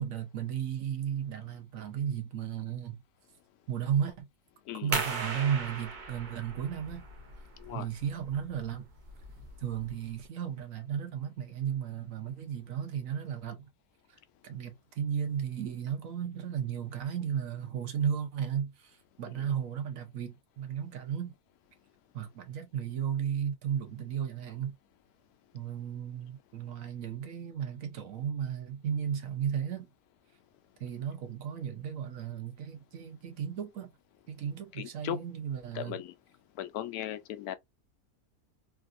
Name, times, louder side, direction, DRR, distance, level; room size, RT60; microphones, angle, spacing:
voice 1, 0.0-3.0 3.7-4.3 4.8-7.0 7.7-8.9 9.6-13.7 14.1-21.3 22.1-24.8 25.5-29.9 30.8-33.9 34.3-36.0, right 8 dB, 65° right, 1.1 m, -34 dB
sound 1, 4.9-10.3, right 4 dB, 40° right, 0.7 m, -38 dB
voice 2, 34.8-35.2 35.7-36.1 36.6-37.6, left 12 dB, 80° left, 1.1 m, -37 dB
3.3 x 2.5 x 2.5 m
omnidirectional pair, 1.6 m